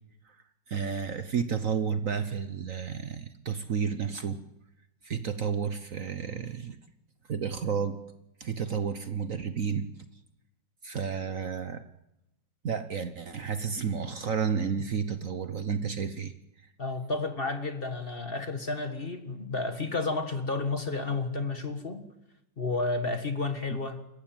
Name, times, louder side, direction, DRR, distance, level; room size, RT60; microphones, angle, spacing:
voice 1, 0.7-4.4 5.0-6.8 7.3-8.0 8.4-9.9 10.8-11.9 12.6-16.3 23.7-23.8, right 6 dB, 50° right, 1.3 m, -31 dB
voice 2, 16.8-22.1 22.6-24.0, left 3 dB, 30° left, 1.7 m, -31 dB
27.5 x 15.0 x 9.1 m
omnidirectional pair, 2.0 m